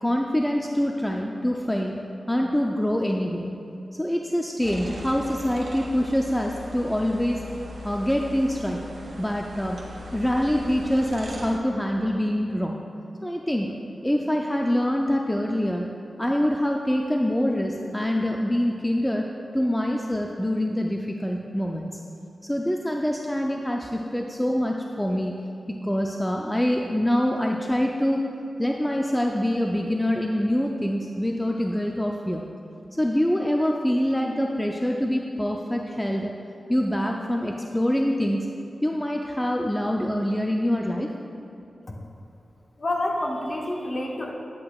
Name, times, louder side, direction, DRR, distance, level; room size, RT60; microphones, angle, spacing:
voice 1, 0.0-2.0 2.3-3.5 4.0-7.4 7.8-8.8 9.2-9.8 10.1-12.8 13.2-13.7 14.0-15.9 16.2-19.2 19.5-22.0 22.4-28.2 28.6-32.4 33.0-36.3 36.7-38.5 38.8-41.1, equal, 5° left, 0 dB, 0.4 m, -25 dB
sound 1, 4.6-11.6, left 1 dB, 85° right, 1.3 m, -39 dB
voice 2, 42.8-44.3, left 1 dB, 40° left, -1 dB, 1.0 m, -28 dB
10.5 x 8.5 x 2.3 m, 2.6 s
wide cardioid pair, 150°, 0 cm